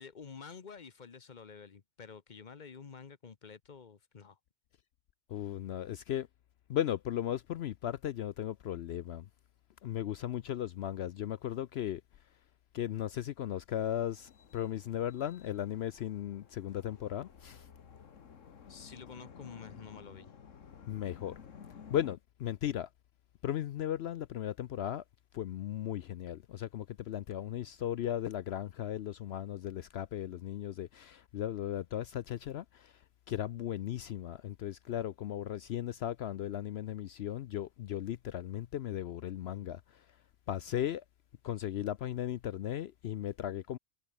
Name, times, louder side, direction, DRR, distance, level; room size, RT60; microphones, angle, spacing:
voice 1, 0.0-4.4 18.7-20.3, left 6 dB, 40° left, 1.0 m, -49 dB
voice 2, 5.3-6.3 6.7-9.3 9.8-12.0 12.7-17.7 20.9-21.3 21.9-22.9 23.4-25.0 25.3-32.9 33.3-40.0 40.5-41.0 41.4-43.8, left 11 dB, 65° left, 0.8 m, -36 dB
sound 1, 13.7-22.2, left 7 dB, 85° left, 1.7 m, -54 dB
omnidirectional pair, 1.3 m